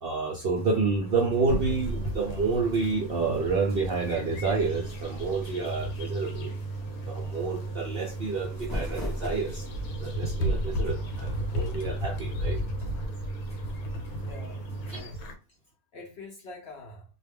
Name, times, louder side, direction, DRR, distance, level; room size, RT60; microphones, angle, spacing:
voice 1, 0.0-6.5 7.0-9.6 9.9-12.6 15.0-15.1, right 4 dB, 65° right, -1 dB, 0.5 m, -29 dB
sound 1, 0.6-15.0, right 3 dB, 10° right, 0.9 m, -37 dB
sound 2, 1.5-15.3, equal, 85° left, 1.1 m, -35 dB
sound 3, 8.3-9.9, equal, 20° left, 0.4 m, -35 dB
voice 2, 14.2-15.2 15.9-17.0, left 2 dB, 60° left, -1 dB, 0.7 m, -45 dB
2.2 x 2.2 x 3.4 m, 0.33 s
omnidirectional pair, 1.5 m